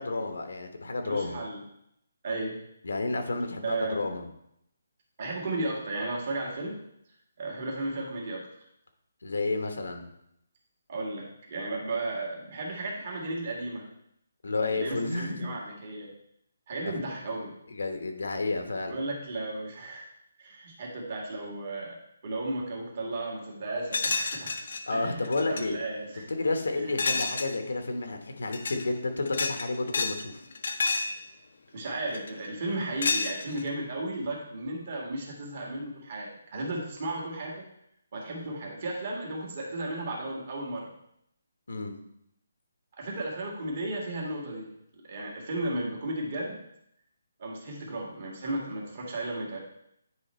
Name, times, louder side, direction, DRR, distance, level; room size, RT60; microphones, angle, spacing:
voice 1, 0.0-1.4 2.8-4.3 9.2-10.1 14.4-15.5 16.8-16.9 17.7-18.9 24.9-25.8 26.4-30.4 41.7-42.0, left 3 dB, 85° left, 5 dB, 1.1 m, -31 dB
voice 2, 1.0-1.6 2.2-2.6 3.6-4.0 5.2-6.8 7.4-8.5 10.9-13.9 14.7-16.1 16.7-17.5 18.9-20.1 20.4-22.0 22.2-24.6 24.9-26.3 27.1-27.2 31.7-37.6 38.1-40.9 43.0-44.7 45.0-46.6 47.4-49.6, right 2 dB, 40° right, -3 dB, 1.9 m, -34 dB
sound 1, 23.9-24.8 25.2-25.6 27.0-27.6 28.4-28.8 29.3-30.2 30.5-31.2 32.1-32.5 33.0-33.7, left 3 dB, 60° left, 0.6 m, -29 dB
9.7 x 3.3 x 4.4 m, 0.76 s
hypercardioid pair, 170°, 0 cm